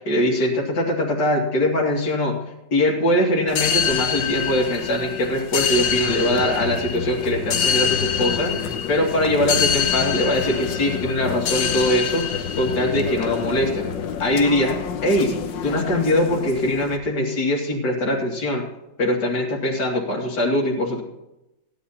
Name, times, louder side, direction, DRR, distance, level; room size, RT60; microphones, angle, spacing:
voice 1, 0.0-2.4 2.7-12.3 12.6-13.9 14.2-15.3 15.6-18.7 19.0-21.0, left 1 dB, 65° left, -3 dB, 3.1 m, -22 dB
sound 1, 3.5-17.0, left 7 dB, 85° left, 1.6 m, -26 dB
16.0 x 10.5 x 4.3 m, 0.92 s
omnidirectional pair, 2.0 m